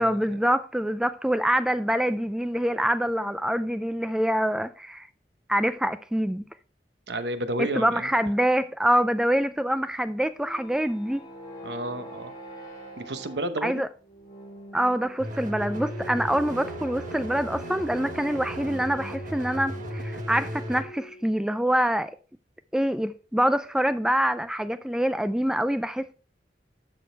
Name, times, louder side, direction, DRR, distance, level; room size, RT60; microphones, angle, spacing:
voice 1, 0.0-5.1 5.5-6.4 7.6-11.2 13.6-13.9 14.7-22.2 22.7-26.1, equal, 5° right, 0.3 m, -25 dB
voice 2, 7.1-8.1 11.6-12.3 13.0-13.8, right 1 dB, 75° right, 1.0 m, -31 dB
sound 1, 10.1-21.4, equal, 25° left, 3.3 m, -43 dB
sound 2, 15.2-20.8, right 1 dB, 50° right, 1.4 m, -36 dB
12.0 x 6.2 x 3.3 m
head